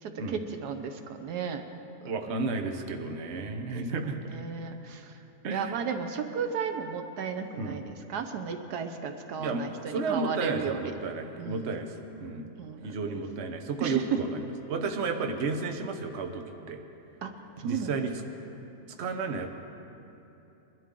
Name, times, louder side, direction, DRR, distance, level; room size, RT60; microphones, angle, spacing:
voice 1, 0.0-1.6 2.0-2.4 3.7-3.8 4.3-5.2 5.5-10.9 11.4-11.8 12.6-13.2 13.8-14.2 17.2-17.3 17.6-18.0, right 6 dB, 80° right, 6 dB, 1.4 m, -34 dB
voice 2, 2.0-4.2 5.4-5.8 7.6-7.8 9.4-9.6 9.9-11.9 12.2-12.5 12.8-16.8 17.6-18.1 19.0-19.5, right 4 dB, 50° right, 4 dB, 1.1 m, -32 dB
22.0 x 12.0 x 3.8 m, 2.9 s
omnidirectional pair, 1.7 m